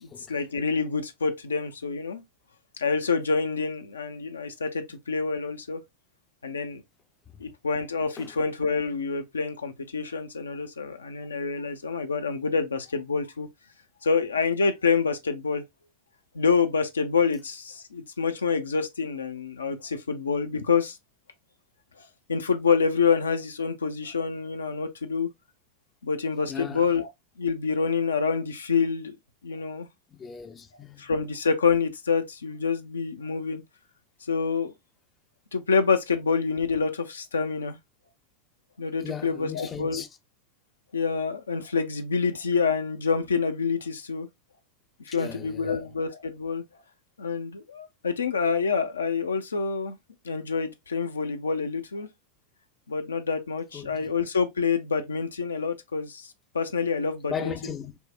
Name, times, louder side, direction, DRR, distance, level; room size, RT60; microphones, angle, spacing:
voice 1, 0.0-2.2 2.8-5.8 6.4-6.8 7.4-13.5 14.0-15.6 16.3-21.0 22.3-25.3 26.0-27.1 27.4-29.1 29.4-29.9 31.0-33.6 34.3-34.7 35.5-37.8 38.8-40.0 40.9-44.3 45.1-46.6 47.2-50.0 50.2-52.1 52.9-57.5, left 5 dB, 70° left, 0.5 m, -27 dB
voice 2, 26.5-26.9 30.2-31.1 39.0-40.1 45.1-45.8 53.7-54.1 57.3-58.0, left 7 dB, 20° left, 0.5 m, -37 dB
5.4 x 2.0 x 2.4 m
figure-of-eight pair, 90°, 0 cm